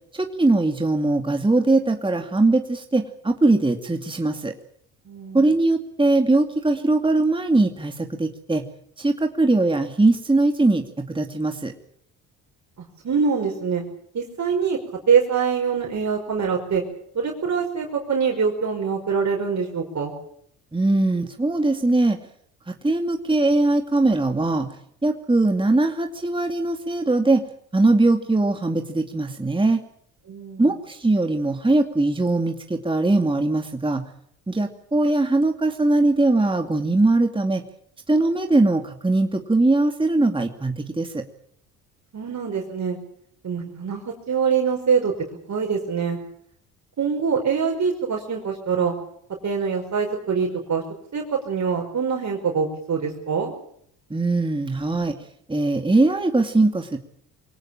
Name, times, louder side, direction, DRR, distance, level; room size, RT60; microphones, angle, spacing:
voice 1, 0.1-4.5 5.3-8.6 9.0-11.7 20.7-22.2 22.7-24.7 25.0-27.4 27.7-29.8 30.6-34.0 34.5-37.6 38.1-41.2 54.1-55.2 55.5-57.0, right 2 dB, 10° right, 5 dB, 2.4 m, -21 dB
voice 2, 5.1-5.5 13.0-13.8 14.1-14.8 15.1-16.8 17.1-20.1 30.3-30.7 42.1-43.0 43.4-45.1 45.5-46.2 47.0-48.9 49.4-50.8 51.1-53.5, right 6 dB, 45° right, 1 dB, 5.3 m, -24 dB
24.0 x 18.0 x 8.8 m, 0.69 s
supercardioid pair, 70°, 40 cm